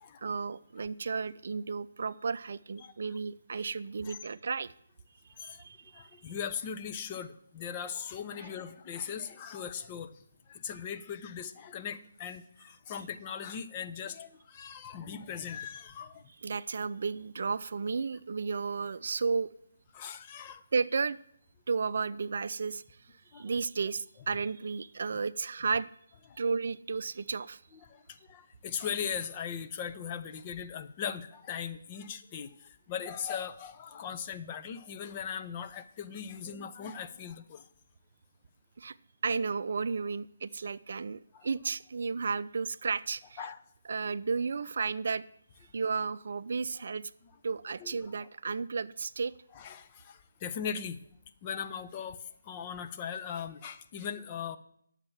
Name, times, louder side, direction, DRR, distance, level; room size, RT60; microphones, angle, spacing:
voice 1, 0.2-4.7 5.4-6.3 16.4-19.5 20.7-21.2 21.7-22.8 23.3-25.9 26.4-27.6 38.8-39.0 39.2-43.4 43.9-45.2 45.7-47.0 47.4-49.3, right 5 dB, 60° right, 15 dB, 0.4 m, -33 dB
voice 2, 5.9-16.2 19.9-20.6 23.3-23.5 26.3-26.4 27.9-37.6 41.3-41.5 43.4-43.6 47.8-48.3 49.5-51.0 51.4-52.2 52.4-54.6, left 7 dB, 25° left, 8 dB, 0.7 m, -39 dB
10.5 x 7.4 x 7.1 m, 0.69 s
figure-of-eight pair, 150°, 0 cm